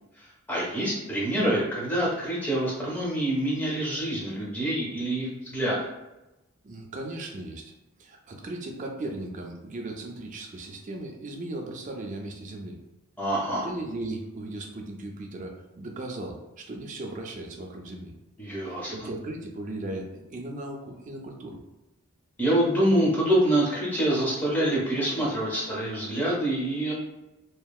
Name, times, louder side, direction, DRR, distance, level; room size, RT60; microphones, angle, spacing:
voice 1, 0.2-5.9 13.2-13.7 18.4-19.1 22.4-26.9, right 1 dB, 10° left, -6 dB, 0.6 m, -26 dB
voice 2, 6.6-7.7 8.0-12.8 13.6-18.1 18.7-21.6, right 2 dB, 35° right, 1 dB, 0.3 m, -37 dB
2.7 x 2.3 x 2.3 m, 0.99 s
head